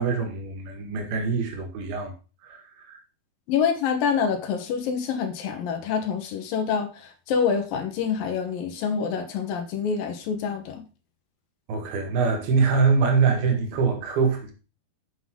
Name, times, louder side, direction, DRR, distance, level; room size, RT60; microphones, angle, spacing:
voice 1, 0.0-2.1 2.4-3.0 11.7-14.5, right 5 dB, 80° right, 3.7 m, -24 dB
voice 2, 3.5-10.8, left 6 dB, 70° left, 3.0 m, -26 dB
8.1 x 7.5 x 3.8 m
omnidirectional pair, 4.4 m